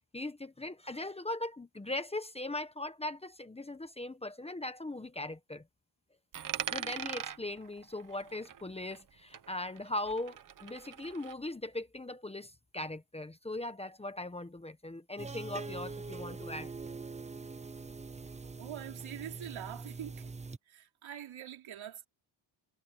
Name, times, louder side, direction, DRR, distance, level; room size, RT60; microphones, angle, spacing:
voice 1, 0.1-5.6 6.7-16.7, left 2 dB, 15° left, 1.1 m, -39 dB
Coin (dropping), 6.3-9.1 9.3-11.4, right 9 dB, 40° right, 1.0 m, -41 dB
sound 1, 15.2-20.6, right 4 dB, 15° right, 0.6 m, -43 dB
voice 2, 18.4-20.4 20.7-22.1, right 11 dB, 75° right, 4.2 m, -44 dB
cardioid pair, 135°, 47 cm